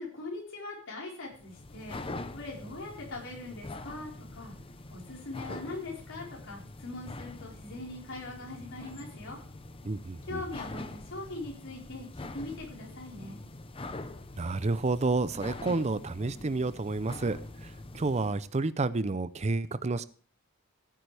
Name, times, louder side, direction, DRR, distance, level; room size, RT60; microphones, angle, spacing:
voice 1, 0.0-4.5 4.9-9.4 10.3-13.4, left 2 dB, 60° left, -2 dB, 4.3 m, -41 dB
sound 1, 1.3-18.5, left 2 dB, 25° left, 0.7 m, -44 dB
voice 2, 9.8-10.4 14.4-20.0, right 3 dB, 30° right, 15 dB, 0.5 m, -30 dB
16.0 x 9.3 x 3.4 m, 0.43 s
head